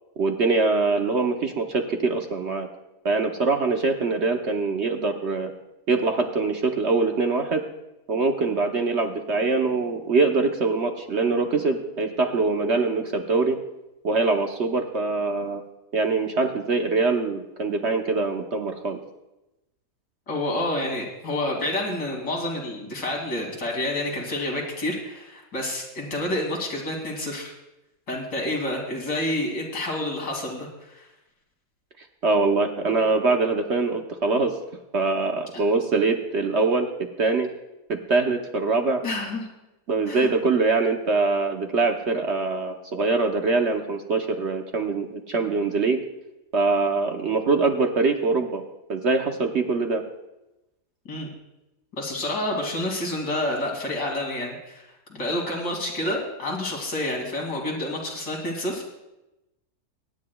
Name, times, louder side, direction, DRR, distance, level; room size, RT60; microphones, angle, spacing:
voice 1, 0.2-2.7 3.0-5.5 5.9-7.6 8.1-13.6 14.0-15.6 15.9-19.0 32.2-34.5 34.9-36.9 37.2-37.5 37.9-39.0 39.9-46.0 46.5-48.6 48.9-50.0, right 3 dB, 50° right, 4 dB, 0.9 m, -23 dB
voice 2, 20.3-27.5 28.1-31.1 35.5-35.6 39.0-39.5 40.1-40.3 51.0-51.3 52.0-54.8 55.1-58.9, left 1 dB, 80° left, 0 dB, 3.1 m, -29 dB
24.0 x 9.8 x 2.3 m, 0.95 s
omnidirectional pair, 1.7 m